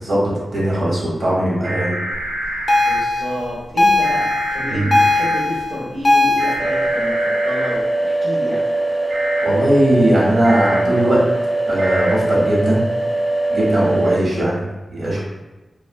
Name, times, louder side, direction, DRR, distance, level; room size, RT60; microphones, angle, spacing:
voice 1, 0.0-2.0 4.7-4.9 9.4-11.2 11.7-12.8 13.5-15.2, right 1 dB, 65° right, -6 dB, 1.0 m, -19 dB
sound 1, 1.6-3.0 4.0-5.4 6.4-7.7 9.1-9.5 10.4-10.8 11.8-12.1, right 1 dB, 80° right, 0.5 m, -26 dB
sound 2, 2.7-6.5, left 2 dB, 45° left, 0.5 m, -18 dB
voice 2, 2.8-8.7, equal, 45° right, -8 dB, 0.7 m, -29 dB
sound 3, 6.6-14.2, right 2 dB, 15° right, 0.3 m, -21 dB
2.6 x 2.1 x 2.6 m, 1.1 s
cardioid pair, 70°, 0 cm